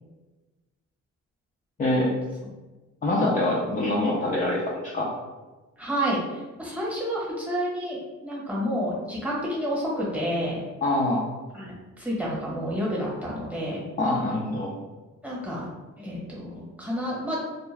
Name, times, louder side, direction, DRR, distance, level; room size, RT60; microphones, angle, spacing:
voice 1, 3.0-5.1 10.8-11.2 14.0-14.7, left 1 dB, 25° left, -4 dB, 0.4 m, -24 dB
voice 2, 5.8-10.6 11.5-13.8 15.2-15.7 16.0-17.4, equal, 5° right, -6 dB, 1.0 m, -29 dB
2.2 x 2.1 x 3.2 m, 1.2 s
cardioid pair, 90°, 30 cm